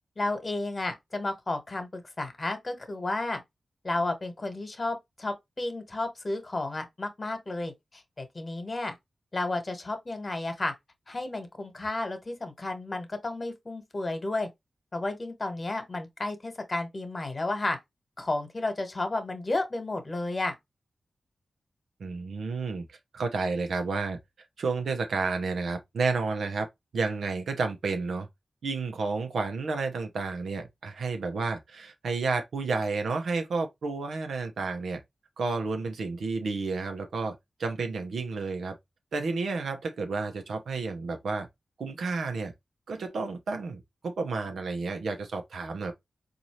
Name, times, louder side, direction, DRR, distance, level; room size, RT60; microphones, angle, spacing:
voice 1, 0.2-3.4 3.8-8.9 9.3-10.7 11.1-14.5 14.9-17.8 18.2-20.5, left 2 dB, 40° left, 1.3 m, -32 dB
voice 2, 22.0-22.8 23.1-24.2 24.6-26.7 26.9-28.3 28.6-35.0 35.4-38.8 39.1-41.5 41.8-42.5 42.9-45.9, right 4 dB, 90° right, 0.8 m, -31 dB
4.1 x 2.7 x 3.0 m
cardioid pair, 55°, 0 cm